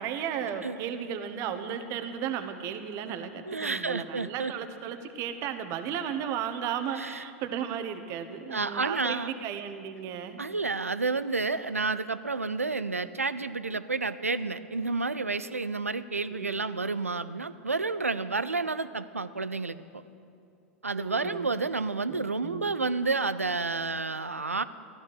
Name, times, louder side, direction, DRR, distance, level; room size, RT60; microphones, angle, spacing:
voice 1, 0.0-10.4 16.3-16.6 20.9-21.5 22.1-22.8, right 8 dB, 40° right, 9 dB, 1.2 m, -35 dB
voice 2, 3.5-4.5 7.0-7.2 8.5-9.3 10.4-20.0 20.8-24.6, right 3 dB, 90° right, 14 dB, 0.5 m, -30 dB
15.5 x 13.0 x 6.4 m, 2.6 s
figure-of-eight pair, 95°, 7 cm